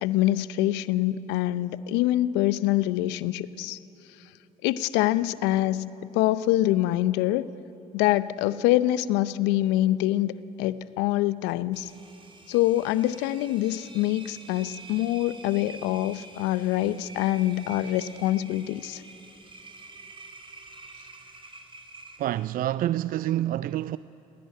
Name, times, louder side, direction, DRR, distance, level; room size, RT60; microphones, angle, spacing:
voice 1, 0.0-3.8 4.6-7.5 7.9-11.9 12.5-19.0, left 15 dB, 75° left, 0.7 m, -25 dB
Engine, 11.7-22.6, right 3 dB, 30° right, 4.3 m, -47 dB
voice 2, 22.2-24.0, right 13 dB, 55° right, 0.4 m, -27 dB
19.5 x 17.5 x 9.5 m
hypercardioid pair, 60°, 18 cm